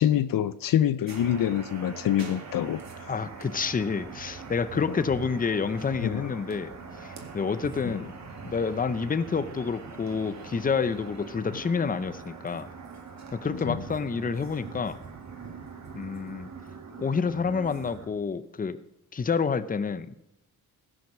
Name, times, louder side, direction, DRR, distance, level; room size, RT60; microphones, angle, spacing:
voice 1, 0.0-3.1 4.7-5.0 6.0-6.4 7.8-7.9 13.5-13.8, left 11 dB, 65° left, 15 dB, 0.6 m, -26 dB
sound 1, 1.1-18.1, right 5 dB, 45° right, 2.1 m, -42 dB
voice 2, 3.1-6.7 7.0-8.1 8.4-12.7 13.3-15.0 15.9-16.5 17.0-18.8 19.1-20.1, left 5 dB, 25° left, 13 dB, 0.7 m, -28 dB
Wind instrument woodwind instrument, 5.0-11.1, left 10 dB, 85° left, 2.0 m, -54 dB
16.0 x 6.4 x 6.1 m, 0.83 s
cardioid pair, 110°, 37 cm